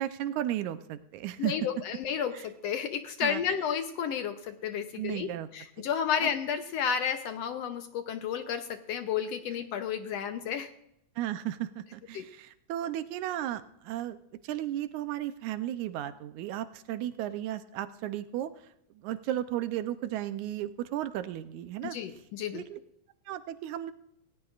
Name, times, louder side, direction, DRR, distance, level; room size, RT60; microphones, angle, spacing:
voice 1, 0.0-1.5 2.3-2.5 3.2-3.4 5.0-5.5 6.2-6.3 11.2-14.2 14.4-18.5 19.0-22.0 22.5-22.8 23.3-23.9, right 12 dB, 80° right, 11 dB, 2.1 m, -34 dB
voice 2, 1.4-10.7 12.1-12.3 21.8-22.6, left 8 dB, 70° left, 8 dB, 1.7 m, -32 dB
18.5 x 17.0 x 2.5 m, 0.77 s
omnidirectional pair, 3.4 m